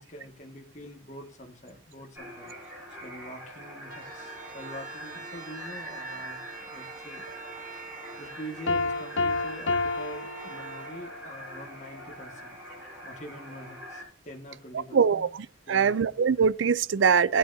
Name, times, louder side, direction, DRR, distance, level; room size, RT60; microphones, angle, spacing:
voice 1, 0.0-7.2 7.7-12.6 13.0-15.3 15.7-16.1, equal, 40° left, 1.8 m, -45 dB
sound 1, 2.1-14.0, equal, 10° right, 6.6 m, -44 dB
sound 2, 3.8-11.9, right 5 dB, 45° right, 2.4 m, -45 dB
Piano, 8.7-11.2, left 3 dB, 80° left, 0.9 m, -30 dB
voice 2, 14.9-17.4, right 6 dB, 80° right, 0.5 m, -23 dB
16.5 x 9.3 x 2.7 m
head